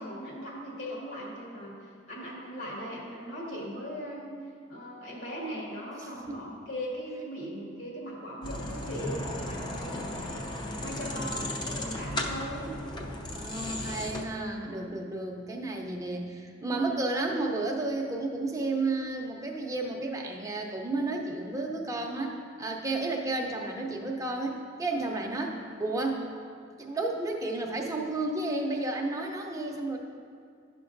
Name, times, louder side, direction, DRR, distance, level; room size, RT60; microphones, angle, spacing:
voice 1, 0.0-4.4 4.7-12.7, equal, 75° left, -5 dB, 1.9 m, -39 dB
voice 2, 6.0-6.4 11.0-11.6 13.4-26.3 26.8-30.0, right 2 dB, 20° right, 1 dB, 0.6 m, -32 dB
sound 1, 8.4-14.2, left 1 dB, 25° left, 0.5 m, -35 dB
11.0 x 5.9 x 2.6 m, 2.2 s
head